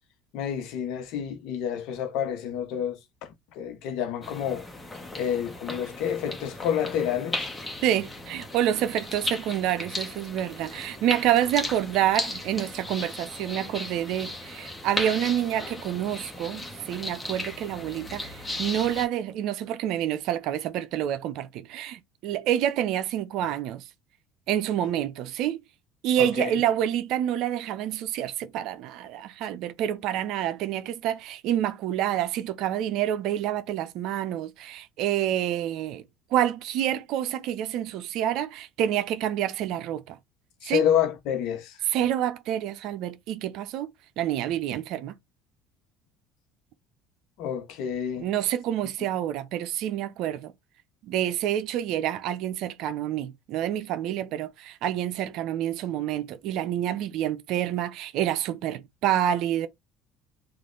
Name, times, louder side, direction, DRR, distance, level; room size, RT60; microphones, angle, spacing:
voice 1, 0.3-4.6 5.2-7.5 26.2-26.5 40.6-41.8 47.4-48.3, left 9 dB, 70° left, 0.9 m, -29 dB
sound 1, 4.2-19.1, left 2 dB, 15° left, 1.2 m, -36 dB
voice 2, 7.8-23.8 24.5-25.6 26.0-36.0 36.3-40.2 40.6-40.8 41.9-43.9 44.2-45.2 48.2-50.5 51.0-59.7, right 11 dB, 65° right, 0.6 m, -28 dB
3.2 x 2.5 x 3.8 m
supercardioid pair, 80°, 0 cm